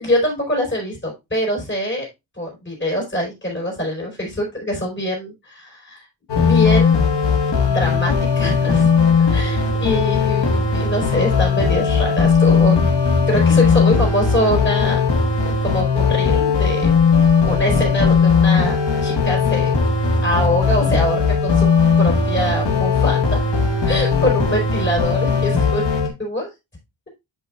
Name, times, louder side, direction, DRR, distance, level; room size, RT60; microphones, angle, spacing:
voice 1, 0.0-2.1 2.4-6.0 6.3-7.0 7.7-8.9 9.3-12.8 13.3-15.0 15.4-16.9 17.2-18.8 19.0-19.7 20.2-21.7 22.0-23.4 23.8-25.8 26.2-26.5, equal, 25° left, -2 dB, 4.2 m, -24 dB
sound 1, 6.3-26.1, left 5 dB, 65° left, 1.6 m, -17 dB
10.0 x 5.4 x 2.4 m, 0.23 s
wide cardioid pair, 160°, 45 cm